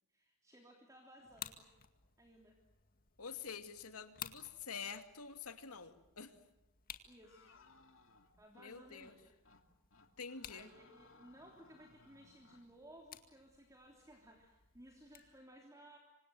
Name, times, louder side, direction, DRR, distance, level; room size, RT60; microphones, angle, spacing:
voice 1, 0.1-1.7 2.2-2.6 7.0-7.6 8.4-9.2 10.5-16.0, right 1 dB, 15° right, 1 dB, 3.3 m, -59 dB
sound 1, 1.2-15.4, left 9 dB, 40° left, 2.1 m, -56 dB
voice 2, 3.2-6.3 8.5-9.2 10.2-10.7, left 6 dB, 80° left, 8 dB, 2.5 m, -47 dB
sound 2, 7.2-8.7 9.0-9.2 9.4-9.6 9.9-12.7, left 3 dB, 60° left, 2.8 m, -65 dB
27.5 x 25.5 x 7.8 m, 0.92 s
head